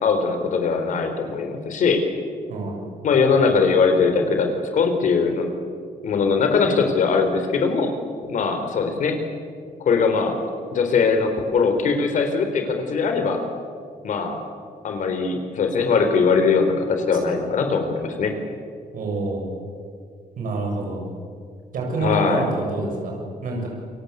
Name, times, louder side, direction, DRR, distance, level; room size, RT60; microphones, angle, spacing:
voice 1, 0.0-2.0 3.0-5.5 6.0-7.9 8.3-9.2 9.8-10.4 10.7-13.4 14.0-14.4 14.8-18.3 22.0-22.4, left 5 dB, 55° left, 5 dB, 4.1 m, -21 dB
voice 2, 18.9-19.6 20.4-21.1 21.7-23.7, right 2 dB, 65° right, 0 dB, 7.5 m, -27 dB
29.0 x 23.5 x 8.3 m, 2.2 s
cardioid pair, 180°, 15 cm